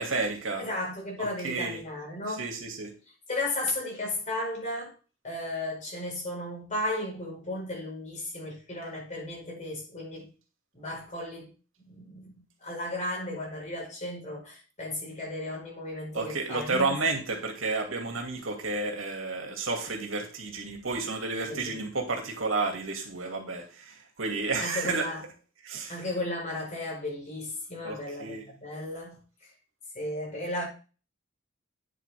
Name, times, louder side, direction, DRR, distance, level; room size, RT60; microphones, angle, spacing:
voice 1, 0.0-0.6 1.2-1.8 2.4-2.9 16.1-25.1 25.6-26.0 27.8-28.4, right 3 dB, 75° right, 2.5 m, -31 dB
voice 2, 0.6-2.5 3.3-4.9 5.2-10.3 10.7-11.5 11.8-16.8 21.5-21.8 24.6-25.2 25.9-29.5 29.9-30.6, left 1 dB, 35° left, 5.1 m, -35 dB
9.6 x 7.7 x 3.6 m
head